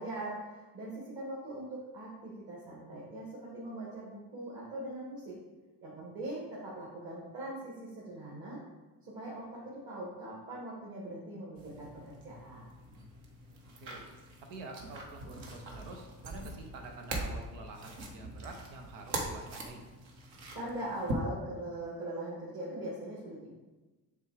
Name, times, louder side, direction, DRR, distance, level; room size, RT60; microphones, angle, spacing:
voice 1, 0.0-5.4 5.8-8.6 9.0-12.7 20.5-23.5, right 1 dB, 45° right, -5 dB, 2.1 m, -41 dB
sound 1, 11.6-21.1, right 2 dB, 65° right, 1.5 m, -43 dB
voice 2, 14.5-19.8, right 2 dB, 85° right, 3 dB, 1.1 m, -47 dB
6.7 x 3.6 x 4.9 m, 1.2 s
supercardioid pair, 75°, 48 cm